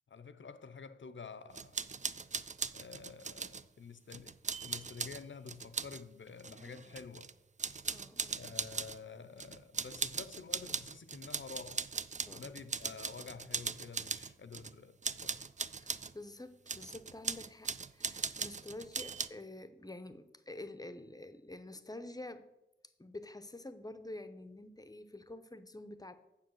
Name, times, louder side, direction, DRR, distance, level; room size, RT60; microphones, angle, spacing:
voice 1, 0.1-1.8 2.7-4.3 4.6-7.3 8.3-11.8 12.3-15.4, left 5 dB, 70° left, 0.7 m, -49 dB
sound 1, 1.5-3.6 4.1-6.0 6.4-7.3 7.6-9.0 9.4-14.8 15.0-16.1 16.7-19.3, right 5 dB, 35° right, 0.4 m, -39 dB
voice 2, 7.9-8.4 12.3-12.4 15.8-22.5 23.0-26.2, left 2 dB, 20° left, 0.7 m, -48 dB
7.2 x 7.1 x 7.7 m
wide cardioid pair, 95°, 20 cm